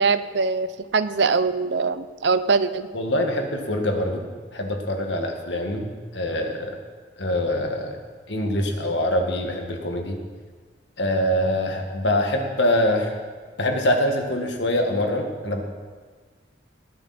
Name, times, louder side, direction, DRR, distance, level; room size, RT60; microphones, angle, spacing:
voice 1, 0.0-2.9, right 4 dB, 70° right, 12 dB, 0.6 m, -22 dB
voice 2, 2.9-4.2 4.5-5.9 6.1-6.8 7.2-8.0 8.3-10.2 11.0-13.2 13.6-15.6, left 1 dB, 75° left, 3 dB, 1.9 m, -24 dB
19.5 x 10.5 x 4.4 m, 1.5 s
head